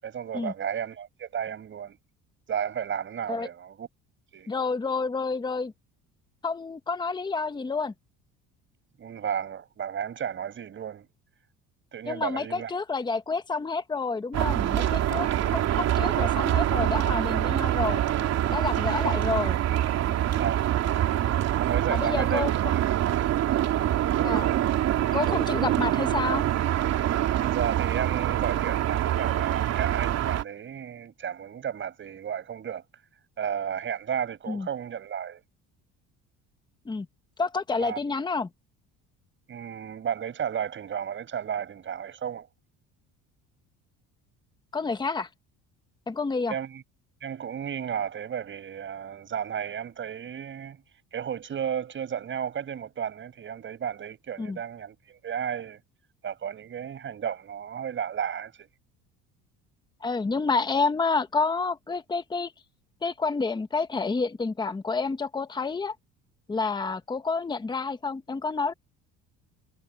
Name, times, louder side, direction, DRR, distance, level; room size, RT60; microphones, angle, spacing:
voice 1, 0.0-2.0 2.5-3.9 4.3-4.5 9.0-11.1 11.9-12.7 15.4-15.5 19.0-19.1 20.4-20.7 21.6-22.8 23.2-23.3 27.4-32.8 33.4-35.4 37.8-38.0 39.5-42.5 46.5-46.8 47.2-50.8 51.1-55.8 56.2-58.7, right 8 dB, 40° right, 7.0 m, -33 dB
voice 2, 4.5-5.7 6.4-7.9 12.1-18.0 18.5-19.6 21.9-22.5 24.2-24.5 25.1-26.4 34.5-34.7 36.8-37.1 37.4-38.5 44.7-45.3 46.1-46.5 54.4-54.6 60.0-62.5 63.0-65.9 66.5-68.7, left 4 dB, 15° left, 1.2 m, -29 dB
sound 1, 14.3-30.4, right 12 dB, 55° right, 3.0 m, -25 dB
sound 2, 14.6-21.3, left 23 dB, 90° left, 7.1 m, -52 dB
cardioid pair, 120°, 31 cm